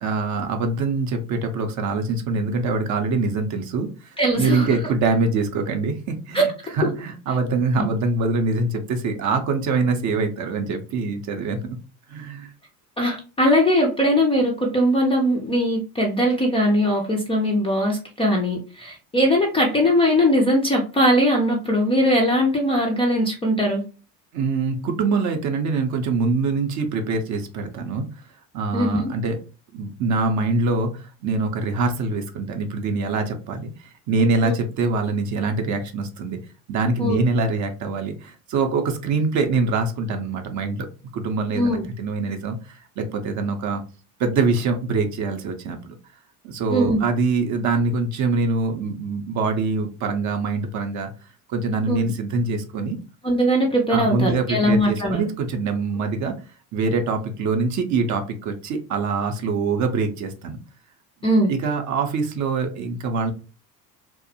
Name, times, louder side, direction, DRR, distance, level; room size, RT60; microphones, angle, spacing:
voice 1, 0.0-11.8 12.1-12.5 24.3-28.1 28.5-29.4 29.7-36.4 36.7-40.9 41.1-43.8 44.2-45.9 46.4-51.1 51.5-53.0 53.9-56.4 56.7-60.6 61.5-63.3, right 3 dB, 40° right, 6 dB, 0.5 m, -24 dB
voice 2, 4.2-4.7 6.3-6.4 13.0-23.8 28.7-29.1 34.4-34.6 37.0-37.2 41.5-41.9 46.7-47.0 51.9-52.0 53.2-55.2 61.2-61.5, equal, 15° left, -1 dB, 0.3 m, -20 dB
2.5 x 2.0 x 2.6 m, 0.34 s
hypercardioid pair, 70°, 48 cm